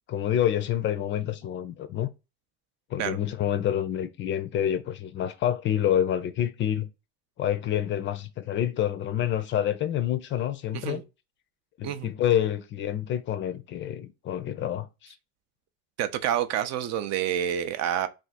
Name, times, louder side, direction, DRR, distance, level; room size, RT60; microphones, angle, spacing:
voice 1, 0.1-2.1 2.9-6.9 7.4-11.0 11.8-15.1, left 10 dB, 40° left, 0.4 m, -27 dB
voice 2, 10.7-11.0 11.8-12.1 16.0-18.1, right 10 dB, 60° right, 0.5 m, -28 dB
2.5 x 2.4 x 4.0 m
supercardioid pair, 115°, 31 cm